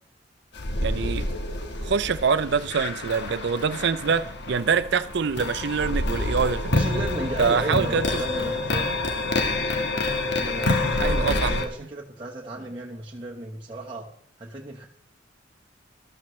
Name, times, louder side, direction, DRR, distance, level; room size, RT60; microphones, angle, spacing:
sound 1, 0.5-11.7, left 2 dB, 65° left, 1.4 m, -27 dB
voice 1, 0.8-1.3 1.8-6.8 7.4-8.0 11.0-11.5, right 5 dB, 65° right, 0.5 m, -25 dB
voice 2, 6.7-8.9 10.4-14.1 14.4-14.9, right 1 dB, 25° right, 1.1 m, -35 dB
13.5 x 12.5 x 3.2 m
head